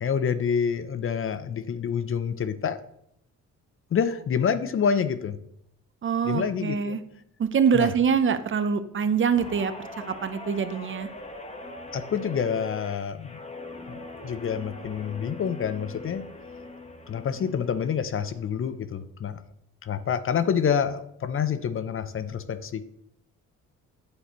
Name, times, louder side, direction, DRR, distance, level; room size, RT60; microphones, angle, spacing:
voice 1, 0.0-2.8 3.9-5.4 6.2-7.0 7.7-7.9 11.9-13.4 13.9-14.0 14.2-16.3 17.1-19.4 19.8-22.8, left 7 dB, 45° left, 13 dB, 0.6 m, -27 dB
voice 2, 6.0-7.0 7.4-9.7 10.1-11.1, right 6 dB, 40° right, 10 dB, 0.8 m, -24 dB
Guitar, 9.4-18.0 18.4-18.7, left 2 dB, 20° left, 1.3 m, -41 dB
8.7 x 7.6 x 3.1 m, 0.75 s
cardioid pair, 90°, 30 cm